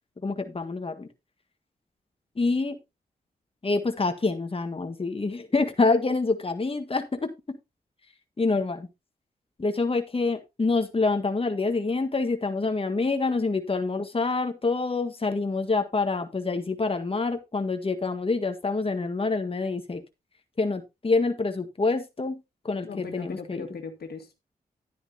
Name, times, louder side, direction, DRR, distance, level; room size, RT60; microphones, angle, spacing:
voice 1, 0.2-1.1 2.3-2.8 3.6-7.6 8.4-8.9 9.6-20.0 20.6-23.6, left 3 dB, 35° left, 1.6 m, -26 dB
voice 2, 22.8-24.4, left 5 dB, 80° left, 2.0 m, -39 dB
11.0 x 9.9 x 2.8 m
cardioid pair, 60°, 16 cm